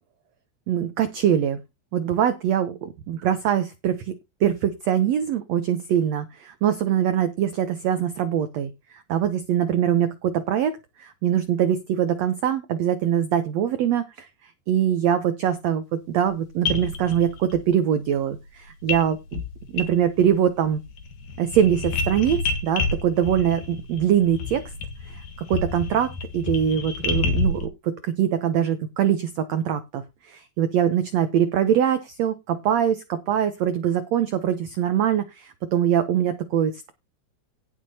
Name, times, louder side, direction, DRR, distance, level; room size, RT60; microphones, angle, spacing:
voice 1, 0.7-1.6 1.9-4.1 4.4-19.4 19.7-20.8 21.4-22.4 22.6-24.6 25.0-25.2 25.5-36.9, right 9 dB, 90° right, 10 dB, 1.4 m, -23 dB
sound 1, 16.3-16.4 16.6-17.6 18.9-19.1 19.3-20.4 20.7-27.7, left 4 dB, 65° left, 3.1 m, -29 dB
17.5 x 6.5 x 2.8 m, 0.23 s
omnidirectional pair, 4.3 m